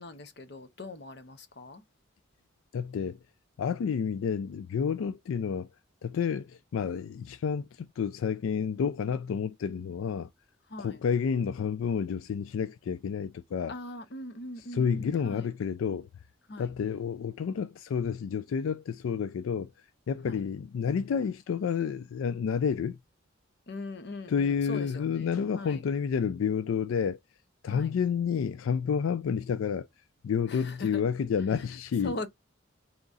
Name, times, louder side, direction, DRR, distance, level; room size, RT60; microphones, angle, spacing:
voice 1, 0.0-1.8 10.7-11.0 13.7-15.5 16.5-16.7 20.2-20.4 23.7-25.0 25.5-25.8 27.7-27.9 30.5-31.0 32.0-32.3, left 1 dB, 55° left, 0.8 m, -40 dB
voice 2, 2.7-3.2 3.6-5.7 6.0-10.3 10.8-13.7 14.6-16.1 16.6-19.7 20.1-23.0 24.3-27.2 27.6-29.9 30.2-32.2, left 6 dB, 80° left, 0.3 m, -30 dB
4.0 x 3.0 x 3.5 m
head